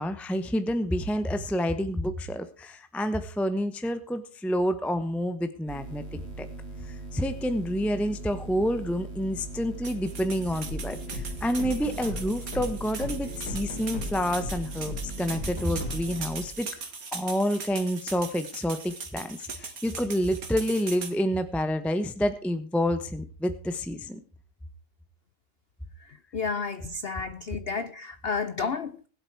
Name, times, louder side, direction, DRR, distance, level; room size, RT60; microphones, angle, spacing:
voice 1, 0.0-6.5 6.8-16.7 17.1-24.2, equal, ahead, 0.4 m, -28 dB
sound 1, 5.7-16.5, right 2 dB, 40° right, 2.1 m, -40 dB
sound 2, 9.8-21.1, right 4 dB, 55° right, 2.4 m, -40 dB
sound 3, 10.7-16.2, left 2 dB, 70° left, 4.8 m, -37 dB
voice 2, 26.3-29.1, left 5 dB, 50° left, 0.7 m, -31 dB
20.0 x 8.2 x 4.6 m
omnidirectional pair, 1.9 m